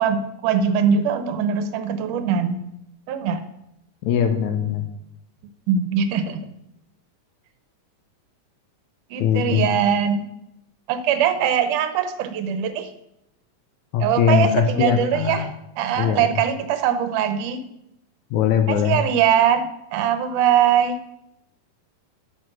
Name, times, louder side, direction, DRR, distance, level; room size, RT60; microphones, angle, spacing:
voice 1, 0.0-2.6 3.1-3.4 5.7-6.5 9.1-10.3 10.9-12.9 14.0-15.5 15.8-17.6 18.7-21.0, right 8 dB, 85° right, 10 dB, 2.3 m, -21 dB
voice 2, 4.0-4.8 9.2-9.7 13.9-15.5 16.0-16.3 18.3-19.0, left 8 dB, 75° left, 8 dB, 2.1 m, -21 dB
9.0 x 6.4 x 6.3 m, 0.83 s
omnidirectional pair, 3.5 m